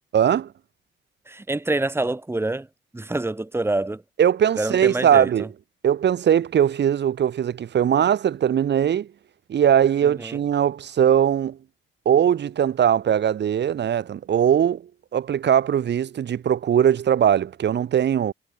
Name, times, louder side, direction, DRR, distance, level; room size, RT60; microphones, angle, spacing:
voice 1, 0.1-0.5 4.2-5.5 5.8-9.1 9.5-11.6 12.1-14.8 15.1-18.3, right 9 dB, 60° right, 4.2 m, -20 dB
voice 2, 1.3-2.7 2.9-4.0 4.6-5.5 10.0-10.4, right 2 dB, 10° right, 2.5 m, -26 dB
cardioid pair, 90°, 20 cm